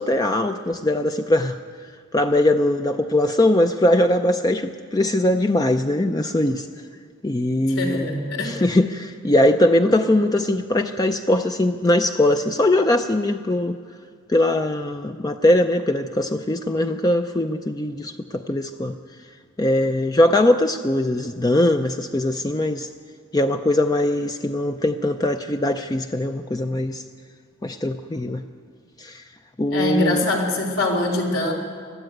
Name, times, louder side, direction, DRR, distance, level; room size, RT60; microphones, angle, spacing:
voice 1, 0.0-6.7 7.2-8.1 8.4-13.8 14.3-19.0 19.6-22.9 23.3-27.0 27.6-28.4 29.0-29.2 29.6-30.3, left 1 dB, 20° left, 6 dB, 0.5 m, -21 dB
voice 2, 7.7-8.6 29.7-31.5, left 2 dB, 75° left, 2 dB, 3.7 m, -23 dB
21.0 x 13.5 x 9.3 m, 2.1 s
head